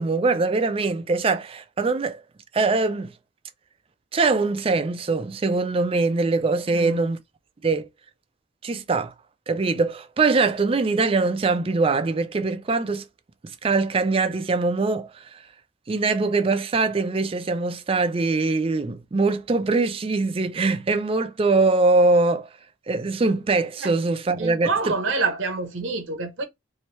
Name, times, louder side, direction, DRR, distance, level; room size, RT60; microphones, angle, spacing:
voice 1, 0.0-2.2 2.5-3.1 4.1-7.2 7.6-7.9 8.6-9.1 9.5-13.1 13.6-15.4 15.9-22.5 22.9-24.9, right 3 dB, 30° right, 0.4 m, -22 dB
voice 2, 6.7-7.0 23.8-23.9 24.4-26.4, right 4 dB, 70° right, 0.8 m, -27 dB
3.0 x 2.7 x 3.1 m
head